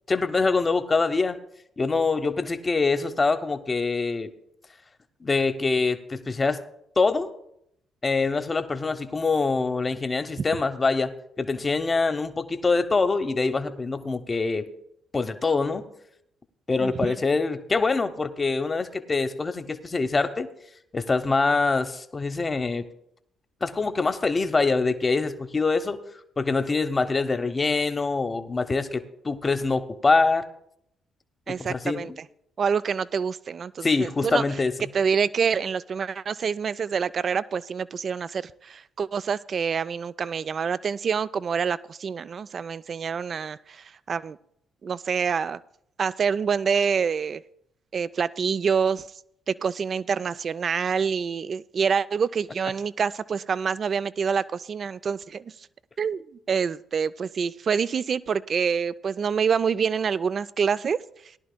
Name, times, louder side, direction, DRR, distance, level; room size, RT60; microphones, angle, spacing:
voice 1, 0.1-1.4 1.8-4.3 5.2-6.6 7.0-7.3 8.0-11.1 11.4-14.7 15.1-15.9 16.7-20.5 20.9-22.9 23.6-26.0 26.4-30.4 31.5-32.2 33.8-34.9, left 3 dB, 35° left, 9 dB, 0.8 m, -24 dB
voice 2, 16.8-17.1 31.5-32.3 32.6-34.4 34.9-44.4 44.8-45.6 46.0-47.4 47.9-49.1 49.5-55.7 56.0-61.0, right 6 dB, 50° right, 16 dB, 0.3 m, -26 dB
18.0 x 11.0 x 2.2 m, 0.74 s
hypercardioid pair, 50°, 0 cm